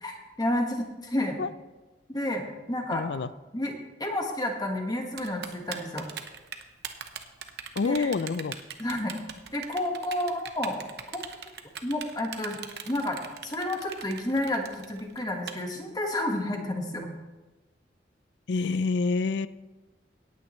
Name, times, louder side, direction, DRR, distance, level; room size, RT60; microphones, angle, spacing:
voice 1, 0.0-1.4 2.1-3.0 3.5-3.7 4.0-6.1 7.8-8.1 8.8-9.1 9.5-10.8 11.1-11.2 11.8-12.6 12.9-17.1, left 1 dB, 20° left, 3 dB, 1.4 m, -30 dB
voice 2, 2.9-3.3 7.8-8.6 18.5-19.5, left 4 dB, 80° left, 16 dB, 0.4 m, -27 dB
Typing, 5.2-15.5, right 8 dB, 70° right, 0.9 m, -39 dB
17.5 x 9.2 x 3.1 m, 1.2 s
head